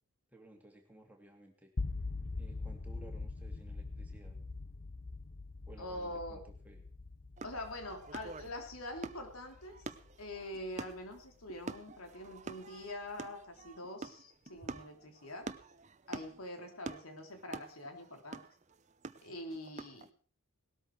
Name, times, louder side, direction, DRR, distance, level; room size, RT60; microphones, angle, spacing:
voice 1, 0.3-1.7 2.4-4.4 5.7-6.8, right 1 dB, 5° right, 2 dB, 2.6 m, -56 dB
sound 1, 1.8-11.8, left 3 dB, 40° left, 0.7 m, -43 dB
voice 2, 5.8-6.4 7.4-9.8 10.2-15.5 16.1-18.4 19.2-20.1, left 1 dB, 80° left, 4 dB, 3.4 m, -44 dB
sound 2, 7.4-20.1, right 3 dB, 35° right, 0.7 m, -47 dB
19.0 x 13.0 x 4.7 m, 0.41 s
head